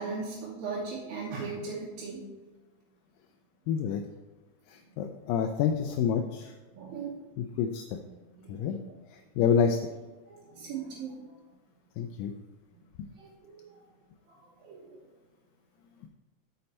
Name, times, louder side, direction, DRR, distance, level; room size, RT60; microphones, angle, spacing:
voice 1, 0.0-2.2 6.8-7.1 8.4-8.8 10.3-11.3 12.7-12.8 13.2-13.6 14.6-14.8, right 4 dB, 80° right, -5 dB, 2.9 m, -38 dB
voice 2, 3.7-4.0 5.0-6.5 7.4-7.8 8.5-8.8 9.4-9.8 12.0-12.3, left 7 dB, 80° left, 5 dB, 2.1 m, -27 dB
8.5 x 6.6 x 4.2 m, 1.2 s
omnidirectional pair, 4.1 m